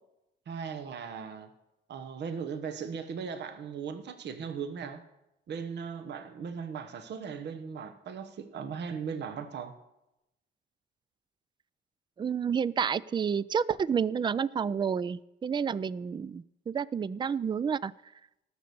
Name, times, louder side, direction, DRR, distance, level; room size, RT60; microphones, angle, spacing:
voice 1, 0.5-1.5 1.9-5.0 5.5-9.7, right 6 dB, 60° right, 8 dB, 1.1 m, -38 dB
voice 2, 12.2-17.9, right 7 dB, 25° right, 21 dB, 0.3 m, -30 dB
16.5 x 6.6 x 6.9 m, 0.91 s
cardioid pair, 90°, 20 cm